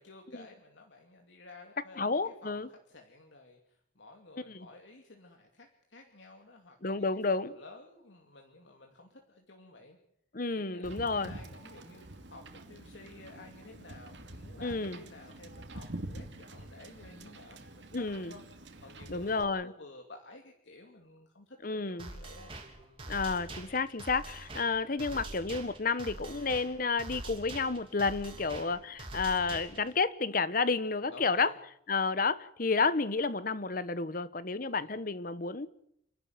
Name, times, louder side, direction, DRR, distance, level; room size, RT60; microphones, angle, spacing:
voice 1, 0.0-10.0 10.5-23.0 28.3-28.9 31.0-31.6 34.7-35.0, left 2 dB, 80° left, 2.6 m, -53 dB
voice 2, 2.0-2.7 4.5-4.7 6.8-7.5 10.3-11.3 14.6-15.0 17.9-18.3 19.1-19.7 21.6-22.1 23.1-31.5 31.9-35.7, left 4 dB, 50° left, 1.1 m, -31 dB
Wind / Boat Water vehicle, 10.8-19.4, right 1 dB, 70° right, 2.5 m, -47 dB
sound 1, 22.0-30.0, right 2 dB, 30° right, 3.3 m, -45 dB
28.5 x 12.0 x 9.3 m
head